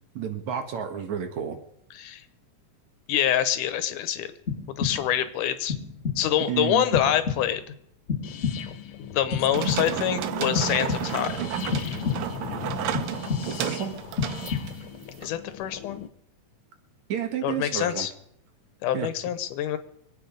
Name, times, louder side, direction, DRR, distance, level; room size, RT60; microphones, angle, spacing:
voice 1, 0.2-1.6 6.5-6.8 13.5-13.9 17.1-18.1 18.9-19.1, right 8 dB, 65° right, 6 dB, 2.8 m, -30 dB
voice 2, 3.1-4.3 4.8-5.8 6.2-7.6 9.0-11.5 15.2-16.1 17.4-18.1 18.8-19.8, left 11 dB, 85° left, 12 dB, 2.6 m, -26 dB
sound 1, 4.5-5.3 5.7-6.4 6.9-7.7 8.1-8.9 9.3-10.1 10.5-11.3 11.7-12.5 12.9-13.8 14.2-15.0, left 6 dB, 30° left, 1.8 m, -31 dB
sound 2, 8.2-16.1, left 11 dB, 65° left, 1.3 m, -38 dB
sound 3, 9.5-15.3, right 12 dB, 90° right, 1.2 m, -32 dB
24.5 x 8.9 x 5.2 m, 0.72 s
omnidirectional pair, 3.5 m